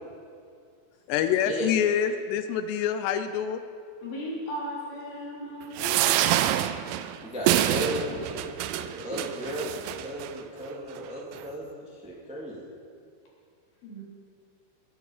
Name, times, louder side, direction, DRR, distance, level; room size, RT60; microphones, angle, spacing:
voice 1, 1.1-3.6, left 8 dB, 85° left, 10 dB, 2.8 m, -26 dB
voice 2, 4.0-6.0 13.8-14.0, equal, 60° left, -5 dB, 5.2 m, -36 dB
sound 1, 5.8-10.3 11.0-11.1 11.3-11.4, right 12 dB, 90° right, 2.0 m, -27 dB
voice 3, 7.2-12.6, equal, 5° right, -4 dB, 1.5 m, -35 dB
21.5 x 11.0 x 5.0 m, 2.3 s
omnidirectional pair, 4.8 m